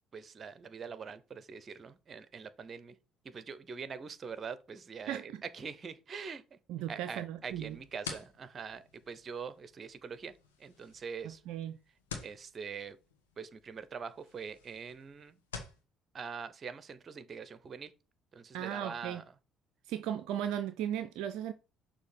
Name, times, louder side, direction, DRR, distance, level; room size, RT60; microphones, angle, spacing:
voice 1, 0.1-3.0 3.2-6.6 6.9-11.4 12.2-13.0 13.4-15.4 16.1-17.9 18.3-19.2, right 6 dB, 40° right, 0.7 m, -43 dB
voice 2, 6.7-7.8 11.2-11.8 18.5-19.2 19.9-21.5, right 10 dB, 70° right, 0.4 m, -36 dB
sound 1, 7.5-15.8, left 5 dB, 85° left, 1.1 m, -49 dB
6.4 x 2.8 x 5.3 m
hypercardioid pair, 55°, 0 cm